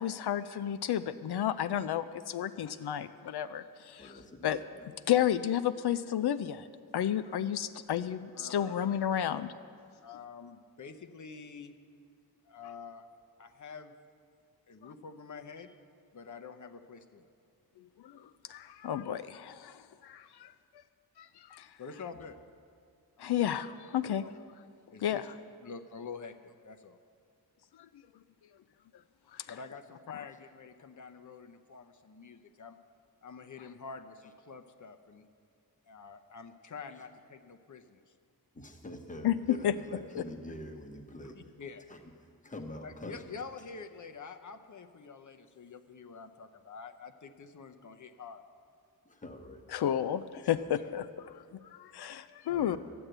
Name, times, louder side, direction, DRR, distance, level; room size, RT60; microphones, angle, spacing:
voice 1, 0.0-4.1 4.4-4.6 5.1-6.7 6.9-9.5 18.0-18.2 18.5-20.5 21.2-21.7 23.2-24.2 25.0-25.2 29.3-29.4 39.2-39.7 40.1-40.2 49.7-51.1 51.8-52.8, left 10 dB, 85° left, 12 dB, 0.5 m, -31 dB
voice 2, 4.0-4.9 38.5-41.4 41.9-42.0 42.4-43.2 49.0-49.6 50.5-50.6 52.4-52.8, left 1 dB, 20° left, 5 dB, 1.0 m, -45 dB
voice 3, 8.3-8.9 10.0-11.7 12.4-13.1 13.4-13.9 14.7-15.8 16.1-17.3 20.4-20.5 21.8-22.4 23.2-23.5 24.0-24.4 24.9-25.3 25.6-27.0 29.5-32.8 33.2-35.3 35.9-38.0 41.2-41.8 42.8-48.4 50.7-51.0, left 5 dB, 50° left, 6 dB, 0.7 m, -47 dB
12.5 x 8.8 x 7.9 m, 2.2 s
wide cardioid pair, 165°, 38 cm